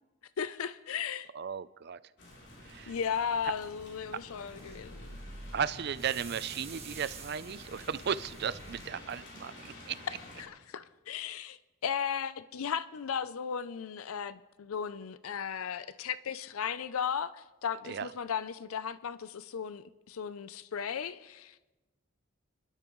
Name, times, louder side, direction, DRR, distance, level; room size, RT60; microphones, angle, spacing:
voice 1, 0.4-1.3 2.9-5.1 10.4-21.6, left 7 dB, 75° left, 0.5 m, -36 dB
voice 2, 1.3-2.0 2.6-3.0 5.5-10.0 17.8-18.1, right 7 dB, 50° right, 0.4 m, -35 dB
sound 1, 2.2-10.4, left 1 dB, 55° left, 3.4 m, -51 dB
sound 2, 2.3-8.9, right 3 dB, 30° right, 1.6 m, -49 dB
28.5 x 12.0 x 3.1 m
head